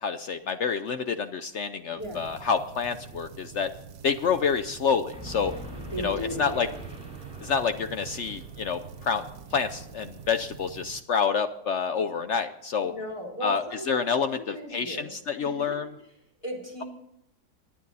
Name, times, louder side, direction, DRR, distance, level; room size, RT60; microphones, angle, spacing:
voice 1, 0.0-3.7 4.0-5.5 6.0-6.7 7.4-9.2 9.5-12.9 13.4-15.9, left 6 dB, 75° left, 10 dB, 0.6 m, -28 dB
voice 2, 1.9-2.4 5.9-6.8 12.8-15.1 15.4-15.9 16.4-16.8, equal, 15° left, -1 dB, 3.6 m, -37 dB
sound 1, 2.0-11.0, right 7 dB, 60° right, 1.4 m, -46 dB
sound 2, 5.1-10.4, right 1 dB, 15° right, 4.8 m, -43 dB
23.5 x 10.0 x 4.1 m, 0.82 s
omnidirectional pair, 2.0 m